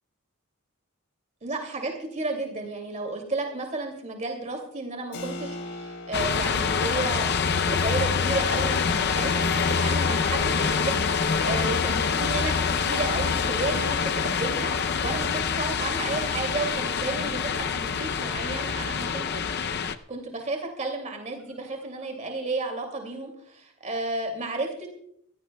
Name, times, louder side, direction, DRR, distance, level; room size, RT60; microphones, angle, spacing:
voice 1, 1.4-7.3 7.7-24.9, right 2 dB, 35° right, 3 dB, 2.5 m, -33 dB
Keyboard (musical), 5.1-15.5, left 1 dB, 75° left, 2.9 m, -45 dB
sound 1, 6.1-20.0, left 6 dB, 50° left, 0.6 m, -25 dB
sound 2, 6.3-16.6 17.1-19.5 20.0-20.1 20.4-20.7 21.2-22.2 22.5-22.6, equal, 5° right, 2.9 m, -50 dB
25.5 x 15.5 x 2.3 m, 0.70 s
head